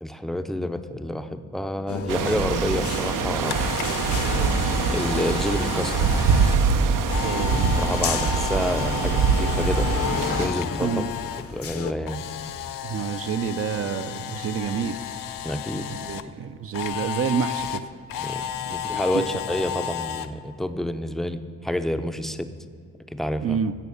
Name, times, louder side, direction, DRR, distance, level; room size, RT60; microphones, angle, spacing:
voice 1, 0.0-3.6 4.9-6.2 7.8-9.9 10.2-11.0 11.5-12.2 15.4-15.9 18.2-22.5 23.1-23.6, left 1 dB, ahead, 9 dB, 0.5 m, -29 dB
sound 1, 1.9-11.9, left 7 dB, 45° left, 0.7 m, -33 dB
sound 2, 2.1-10.5, right 5 dB, 75° right, 0.8 m, -24 dB
Camera, 3.1-11.4 11.7-16.2 16.7-20.3, left 9 dB, 90° left, 0.7 m, -33 dB
voice 2, 7.2-7.6 10.8-11.1 12.8-15.0 15.9-17.8 18.7-18.8 19.1-19.2 23.4-23.7, right 7 dB, 45° right, 11 dB, 0.5 m, -28 dB
16.0 x 7.1 x 7.1 m, 2.4 s
wide cardioid pair, 150°, 32 cm